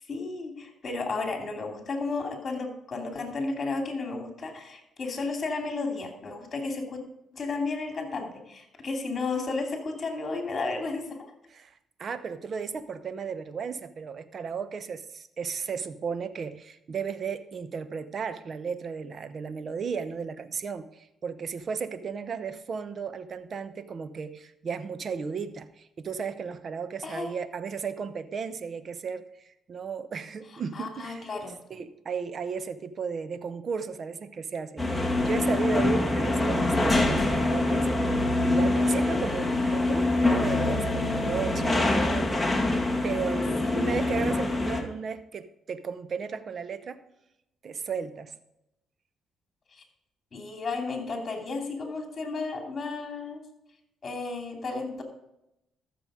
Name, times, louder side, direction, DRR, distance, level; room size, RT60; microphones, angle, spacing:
voice 1, 0.1-7.0 7.3-11.3 27.0-27.3 30.7-31.5 43.6-43.9 49.7-49.8 50.3-53.4 54.0-55.0, left 3 dB, 40° left, 3 dB, 2.8 m, -33 dB
voice 2, 11.5-29.3 29.7-31.3 31.7-47.0 47.6-48.3, right 6 dB, 50° right, 12 dB, 0.9 m, -35 dB
sound 1, 34.8-44.8, left 2 dB, 5° left, 2.0 m, -25 dB
13.5 x 7.0 x 5.0 m, 0.86 s
cardioid pair, 90°, 0 cm